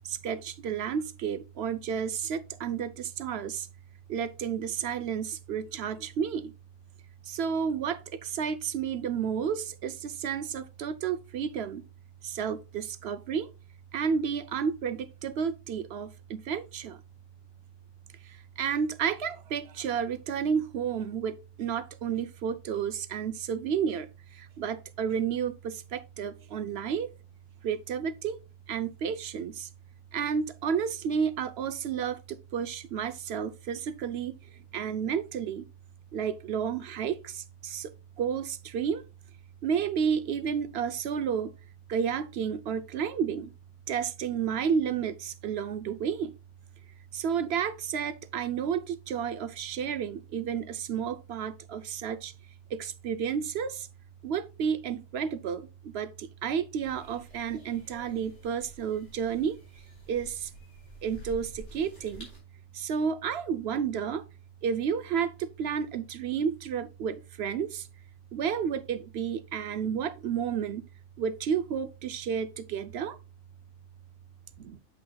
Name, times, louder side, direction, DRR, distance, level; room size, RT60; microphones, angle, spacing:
voice 1, 0.1-3.7 4.1-6.5 7.3-11.8 12.2-13.5 13.9-17.0 18.6-24.1 24.4-27.1 27.6-28.4 28.7-29.7 30.1-34.3 34.7-35.7 36.1-37.9 38.2-39.0 39.6-41.5 41.9-43.5 43.9-46.3 47.1-52.3 52.7-53.9 54.2-59.6 60.1-60.5 61.0-62.3 62.7-64.2 64.6-67.8 68.3-70.9 71.2-73.2 74.6-74.8, right 7 dB, 60° right, 0.8 m, -31 dB
sound 1, 56.8-62.4, right 1 dB, 65° left, 4.4 m, -50 dB
8.6 x 7.4 x 2.3 m
omnidirectional pair, 1.3 m